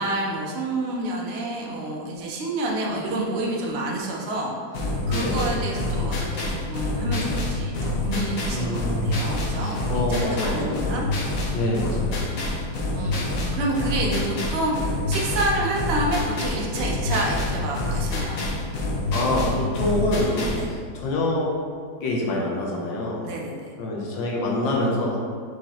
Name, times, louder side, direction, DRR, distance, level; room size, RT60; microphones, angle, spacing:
voice 1, 0.0-8.7 9.0-11.0 12.9-18.4 20.6-20.7 23.2-23.7, right 2 dB, 85° right, -2 dB, 0.5 m, -28 dB
sound 1, 4.7-20.7, left 2 dB, 60° left, 0.9 m, -27 dB
voice 2, 5.1-5.5 8.5-9.2 9.6-10.9 11.5-12.4 19.1-21.5 22.0-23.3 23.8-25.2, left 1 dB, 75° left, -2 dB, 1.5 m, -26 dB
4.6 x 3.9 x 2.9 m, 2.2 s
omnidirectional pair, 2.1 m